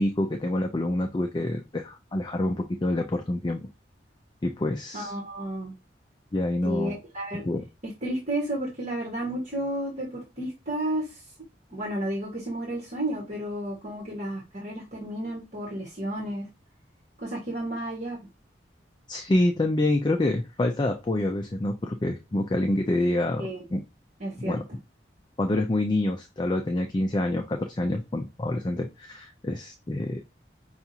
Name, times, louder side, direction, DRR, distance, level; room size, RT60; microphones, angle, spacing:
voice 1, 0.0-3.7 4.4-5.2 6.3-7.0 7.3-7.7 19.1-23.8 24.4-24.6 25.4-30.2, left 1 dB, 25° left, 4 dB, 0.4 m, -27 dB
voice 2, 4.9-5.7 6.6-7.4 8.0-11.0 11.7-16.4 17.2-18.2 23.4-23.6 24.2-24.6, right 1 dB, 40° right, -4 dB, 1.4 m, -32 dB
5.7 x 2.4 x 2.7 m, 0.26 s
head